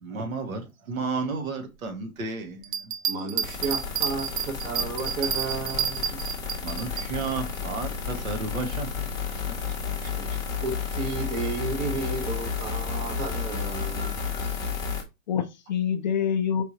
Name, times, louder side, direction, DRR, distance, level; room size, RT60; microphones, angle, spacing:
voice 1, 0.0-2.7 6.6-9.2 9.6-9.7, right 4 dB, 70° right, 1.8 m, -32 dB
Bell, 2.6-7.1 7.5-7.6, right 8 dB, 40° right, 0.5 m, -29 dB
voice 2, 3.1-6.2 10.0-14.1, right 4 dB, 20° right, 0.9 m, -33 dB
sound 1, 3.4-15.0, left 6 dB, 10° left, 0.9 m, -32 dB
voice 3, 14.0-14.5 15.3-16.6, left 8 dB, 35° left, 0.5 m, -27 dB
5.2 x 3.5 x 2.8 m
hypercardioid pair, 140°, 43 cm